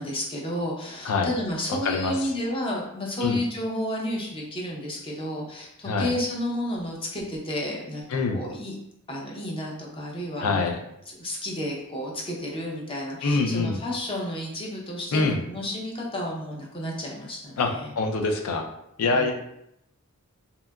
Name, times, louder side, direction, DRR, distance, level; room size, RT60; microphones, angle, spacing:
voice 1, 0.0-8.7 9.1-10.7 11.1-18.0 19.1-19.3, left 1 dB, 25° left, -2 dB, 0.5 m, -31 dB
voice 2, 10.4-10.8 13.2-13.8 15.1-15.4 17.6-18.7 19.0-19.3, left 3 dB, 90° left, 4 dB, 0.4 m, -24 dB
2.7 x 2.3 x 2.2 m, 0.79 s
head